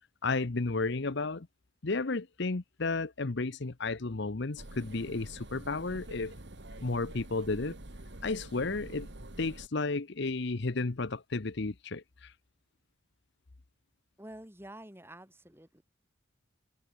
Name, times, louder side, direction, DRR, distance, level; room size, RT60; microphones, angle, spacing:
voice 1, 0.2-1.5 1.8-6.3 6.8-7.7 8.2-9.1 9.4-12.3, left 3 dB, 55° left, 0.9 m, -33 dB
sound 1, 4.6-9.7, right 1 dB, 55° right, 2.5 m, -47 dB
voice 2, 14.2-15.8, right 1 dB, 10° right, 4.3 m, -48 dB
head